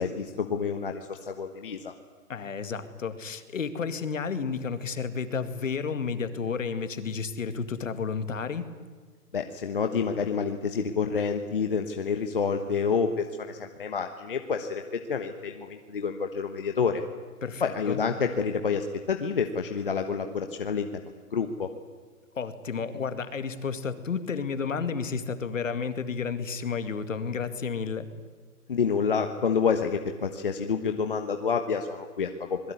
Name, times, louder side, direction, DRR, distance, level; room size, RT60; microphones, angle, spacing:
voice 1, 0.0-1.9 9.3-14.8 15.1-17.0 17.6-20.9 21.3-21.7 28.7-32.7, left 5 dB, 35° left, 6 dB, 1.3 m, -28 dB
voice 2, 2.3-8.7 17.4-18.0 22.4-28.1, left 5 dB, 55° left, 10 dB, 2.4 m, -31 dB
26.0 x 21.0 x 9.7 m, 1.5 s
hypercardioid pair, 175°, 47 cm